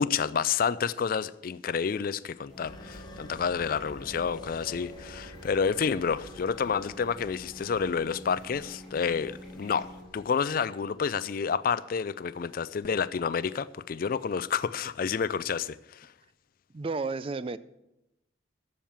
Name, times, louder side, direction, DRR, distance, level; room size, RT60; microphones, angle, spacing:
voice 1, 0.0-16.1, left 6 dB, 45° left, 0.4 m, -29 dB
sound 1, 2.5-10.0, equal, ahead, 3.4 m, -47 dB
sound 2, 2.6-10.9, left 2 dB, 20° left, 1.0 m, -50 dB
voice 2, 16.7-17.6, right 4 dB, 30° right, 0.3 m, -32 dB
12.0 x 7.3 x 7.2 m
head